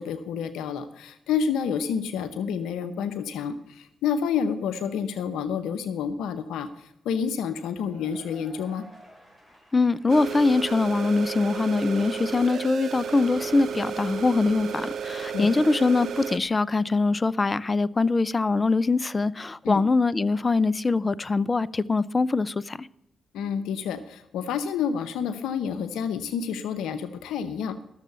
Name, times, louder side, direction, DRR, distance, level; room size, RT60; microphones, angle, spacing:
voice 1, 0.0-8.9 15.3-15.5 19.6-19.8 23.3-27.8, left 7 dB, 90° left, 0.8 m, -29 dB
Cheering / Applause / Crowd, 7.6-15.3, right 1 dB, 10° left, 5.3 m, -55 dB
voice 2, 9.7-22.9, left 3 dB, 30° left, 0.6 m, -23 dB
sound 1, 10.1-16.4, right 6 dB, 70° right, 0.7 m, -33 dB
13.0 x 7.4 x 6.8 m
supercardioid pair, 55°, 0 cm